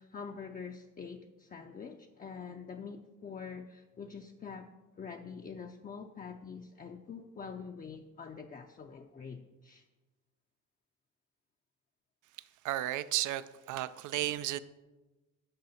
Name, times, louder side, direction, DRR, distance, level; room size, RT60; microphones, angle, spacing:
voice 1, 0.0-9.8, left 6 dB, 30° left, 4 dB, 0.5 m, -45 dB
voice 2, 12.6-14.6, right 14 dB, 80° right, 15 dB, 0.5 m, -33 dB
6.7 x 6.5 x 5.7 m, 1.2 s
cardioid pair, 90°, 30 cm